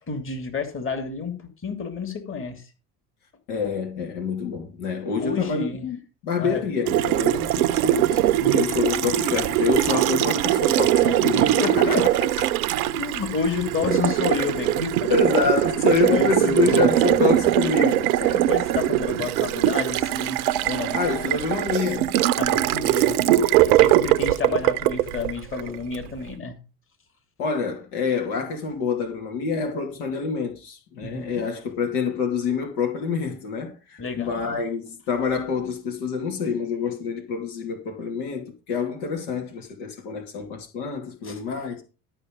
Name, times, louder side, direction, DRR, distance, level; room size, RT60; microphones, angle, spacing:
voice 1, 0.1-2.7 5.2-5.8 6.4-6.7 8.4-8.6 11.0-12.0 12.9-15.1 16.1-16.9 17.2-17.3 18.2-21.0 22.4-23.2 23.5-26.6 31.0-31.4 34.0-34.6 41.2-41.4, left 5 dB, 25° left, 2.8 m, -30 dB
voice 2, 3.5-6.0 6.2-8.2 8.5-12.1 12.4-12.5 15.1-18.1 20.9-22.1 27.4-41.8, left 5 dB, 65° left, 2.7 m, -27 dB
Water tap faucet, 6.9-26.0, right 13 dB, 65° right, 0.8 m, -21 dB
12.5 x 5.8 x 5.3 m
hypercardioid pair, 75°, 46 cm